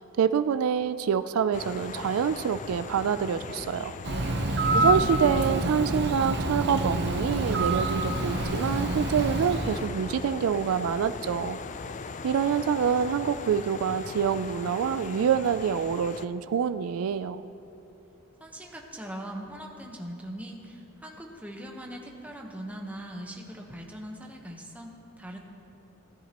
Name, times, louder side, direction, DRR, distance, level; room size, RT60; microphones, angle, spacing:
voice 1, 0.0-3.9 4.7-11.6 12.2-17.4, right 7 dB, 75° right, 12 dB, 0.3 m, -26 dB
sound 1, 1.5-16.3, left 4 dB, 35° left, 0.4 m, -40 dB
Bird, 4.0-9.9, right 1 dB, 50° right, 0.7 m, -27 dB
voice 2, 4.5-5.0 18.4-25.4, equal, 5° right, 0 dB, 1.0 m, -41 dB
17.0 x 10.0 x 3.0 m, 2.9 s
head